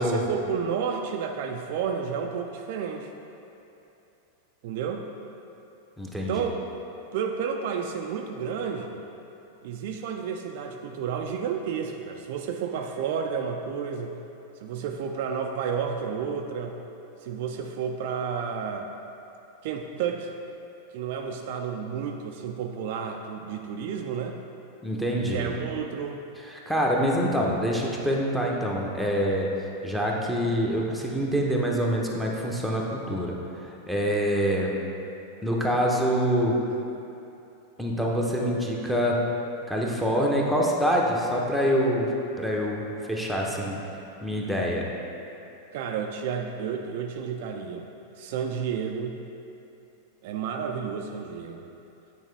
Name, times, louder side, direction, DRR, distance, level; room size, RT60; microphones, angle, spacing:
voice 1, 0.0-3.1 4.6-5.0 6.3-6.6 7.1-9.0 9.6-14.1 14.6-16.8 17.2-18.9 19.6-20.3 20.9-24.4 25.2-26.2 45.7-47.9 48.1-49.2 50.2-51.6, right 6 dB, 50° right, 3 dB, 0.4 m, -31 dB
voice 2, 6.0-6.4 24.8-25.5 26.5-29.5 29.8-33.4 33.6-34.8 35.4-36.6 37.8-39.2 39.7-43.8 44.2-44.9, equal, ahead, -3 dB, 0.9 m, -26 dB
9.2 x 4.4 x 3.3 m, 2.8 s
figure-of-eight pair, 90°, 0 cm